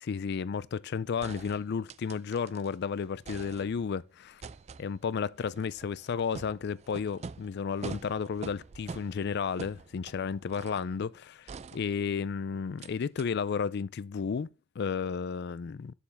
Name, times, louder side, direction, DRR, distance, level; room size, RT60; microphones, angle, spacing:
voice 1, 0.0-4.4 4.8-14.5 14.8-15.9, left 6 dB, 50° left, 0.4 m, -33 dB
sound 1, 1.2-2.8 3.0-4.0 4.4-10.9 11.5-12.3 12.8-12.9 13.2-13.3, right 4 dB, 30° right, 0.3 m, -45 dB
7.2 x 6.8 x 3.4 m
head